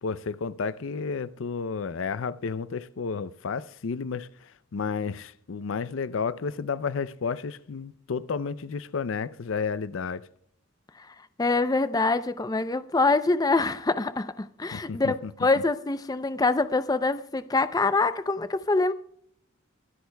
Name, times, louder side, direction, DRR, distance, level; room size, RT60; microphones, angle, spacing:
voice 1, 0.0-10.3 14.7-15.3, left 5 dB, 70° left, 0.5 m, -32 dB
voice 2, 11.4-18.9, left 3 dB, 20° left, 0.5 m, -25 dB
23.5 x 12.5 x 2.2 m
head